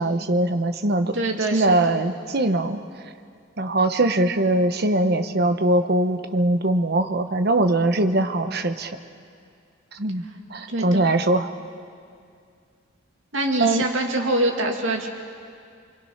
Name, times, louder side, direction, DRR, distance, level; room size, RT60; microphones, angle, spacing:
voice 1, 0.0-1.1 1.5-2.8 3.6-8.9 9.9-10.2 10.5-11.5 13.6-13.8, right 2 dB, 50° right, 8 dB, 1.1 m, -21 dB
voice 2, 1.1-1.9 10.7-11.0 13.3-15.1, right 2 dB, 65° right, 2 dB, 2.5 m, -24 dB
29.5 x 22.5 x 5.8 m, 2.3 s
head